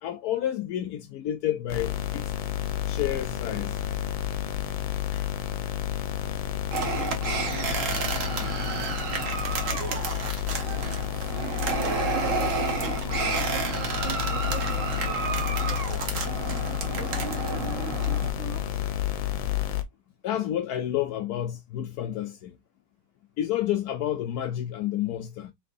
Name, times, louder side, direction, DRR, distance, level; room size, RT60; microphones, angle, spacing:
voice 1, 0.0-2.3 2.9-3.8 5.1-5.3 20.2-22.5 23.4-25.5, left 11 dB, 70° left, 0.9 m, -30 dB
sound 1, 1.7-19.8, left 11 dB, 90° left, 1.6 m, -30 dB
sound 2, 6.7-18.3, right 5 dB, 45° right, 1.3 m, -30 dB
voice 2, 9.7-10.2 10.6-12.4 12.8-16.5 17.0-18.8, right 6 dB, 80° right, 1.8 m, -42 dB
5.7 x 3.3 x 2.5 m
omnidirectional pair, 2.1 m